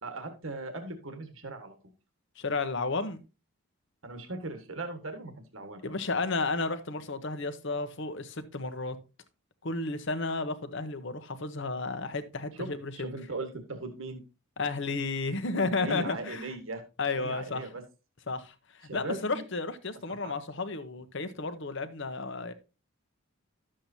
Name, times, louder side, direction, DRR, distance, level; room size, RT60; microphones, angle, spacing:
voice 1, 0.0-1.7 4.0-5.8 12.5-12.7 12.9-14.2 15.8-16.8 17.2-17.8 18.8-19.4 20.1-20.3, right 3 dB, 65° right, 1.6 m, -38 dB
voice 2, 2.4-3.2 5.8-9.0 9.6-13.1 14.6-16.5 17.0-17.6 18.3-18.5 18.9-22.5, left 3 dB, 55° left, 1.0 m, -32 dB
12.0 x 7.6 x 2.8 m
head